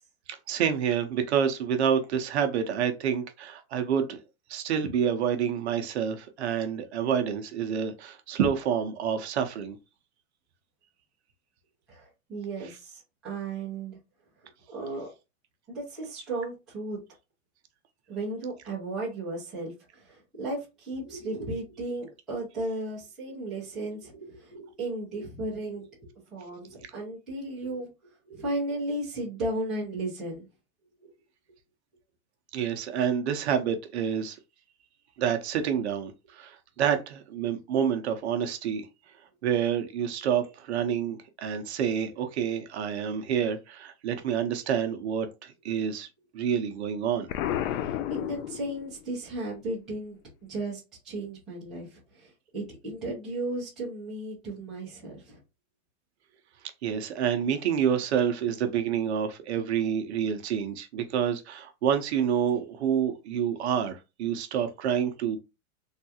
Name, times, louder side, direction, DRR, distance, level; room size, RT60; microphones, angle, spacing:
voice 1, 0.3-4.2 4.5-9.8 32.5-34.4 35.2-38.9 39.4-46.1 46.3-47.3 56.8-65.4, right 8 dB, 55° right, 0.6 m, -28 dB
voice 2, 11.9-14.0 14.4-15.1 15.7-17.0 18.1-30.5 31.0-31.1 47.7-50.2 50.5-55.4, right 2 dB, ahead, 0.4 m, -35 dB
Explosion, 47.3-49.1, left 11 dB, 80° left, 0.5 m, -31 dB
3.4 x 2.3 x 2.7 m
supercardioid pair, 170°, 40 cm